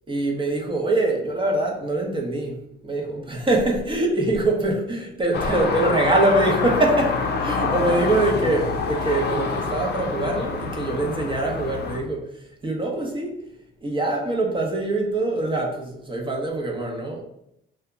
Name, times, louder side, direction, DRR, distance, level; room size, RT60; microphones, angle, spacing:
voice 1, 0.1-13.3 13.8-17.2, right 2 dB, 25° right, 0 dB, 0.8 m, -24 dB
sound 1, 5.3-12.0, left 4 dB, 55° left, 0.6 m, -26 dB
2.8 x 2.3 x 3.7 m, 0.76 s
cardioid pair, 90°, 20 cm